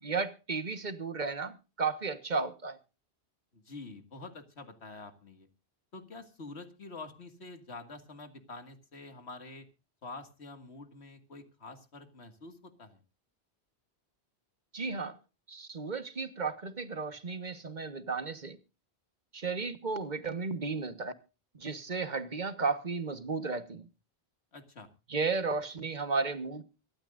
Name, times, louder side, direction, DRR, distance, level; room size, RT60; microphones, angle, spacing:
voice 1, 0.0-2.8 14.7-15.2 15.5-18.6 19.3-21.1 21.5-23.9 25.1-26.6, right 4 dB, 45° right, 1.5 m, -34 dB
voice 2, 3.5-5.5 5.9-9.7 10.0-13.0 24.5-24.9, left 3 dB, 80° left, 2.3 m, -47 dB
24.5 x 13.0 x 2.6 m
omnidirectional pair, 1.1 m